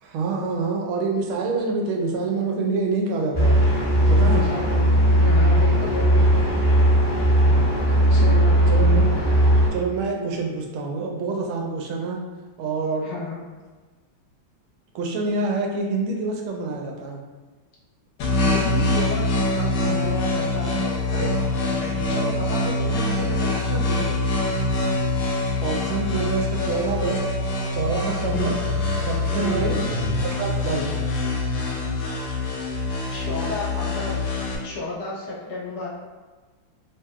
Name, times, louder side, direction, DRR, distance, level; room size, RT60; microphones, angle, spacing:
voice 1, 0.0-3.6 4.1-4.5 7.4-7.7 8.7-9.1 9.7-12.2 12.6-13.1 14.9-17.2 25.6-27.2 27.7-28.6 29.0-29.8 30.2-30.9, right 4 dB, 85° right, 0 dB, 1.4 m, -26 dB
sound 1, 3.3-9.7, equal, 25° right, 1.0 m, -18 dB
voice 2, 4.1-6.5 8.1-8.7 13.0-13.4 18.3-24.1 28.3-28.5 29.3-29.8 32.5-32.6 33.1-34.3 34.6-35.9, left 2 dB, 50° left, -6 dB, 0.9 m, -32 dB
sound 2, 18.2-34.6, left 2 dB, 75° left, 1.2 m, -24 dB
3.4 x 2.7 x 2.2 m, 1.3 s
omnidirectional pair, 2.2 m